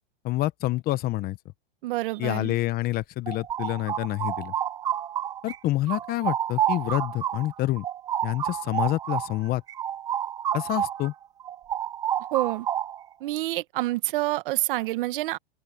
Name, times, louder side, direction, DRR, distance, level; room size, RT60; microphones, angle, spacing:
voice 1, 0.2-1.4 2.2-4.5 5.4-7.8 8.2-9.6 10.5-11.1, left 16 dB, 30° left, 1.0 m, -27 dB
voice 2, 1.8-2.6 12.3-12.7 13.2-15.4, right 18 dB, 60° right, 1.4 m, -27 dB
sound 1, 3.0-5.6 5.9-11.1 11.4-13.1, right 10 dB, 15° right, 0.3 m, -29 dB
open air
supercardioid pair, 140°, 30 cm